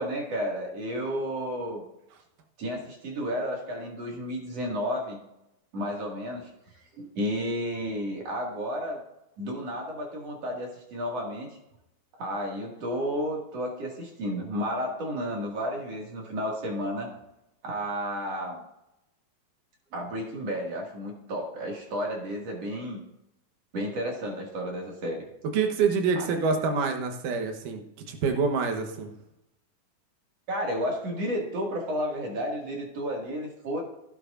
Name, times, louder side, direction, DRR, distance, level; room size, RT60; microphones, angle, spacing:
voice 1, 0.0-1.8 2.6-5.2 5.7-9.0 9.4-11.5 12.1-17.1 17.6-18.6 19.9-23.0 23.7-25.3 26.2-26.3 30.5-33.8, equal, 50° right, -1 dB, 3.0 m, -32 dB
voice 2, 25.5-29.1, right 5 dB, 70° right, 4 dB, 2.6 m, -26 dB
16.0 x 9.0 x 2.6 m, 0.84 s
omnidirectional pair, 4.0 m